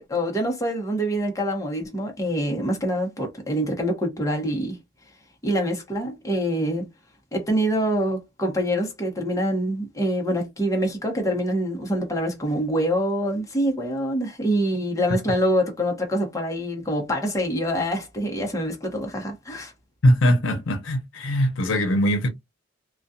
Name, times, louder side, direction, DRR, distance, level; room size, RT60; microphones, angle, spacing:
voice 1, 0.0-4.8 5.4-6.9 7.3-19.7, equal, 15° left, 0.8 m, -25 dB
voice 2, 20.0-22.3, equal, 85° left, 0.7 m, -21 dB
2.3 x 2.3 x 2.6 m
head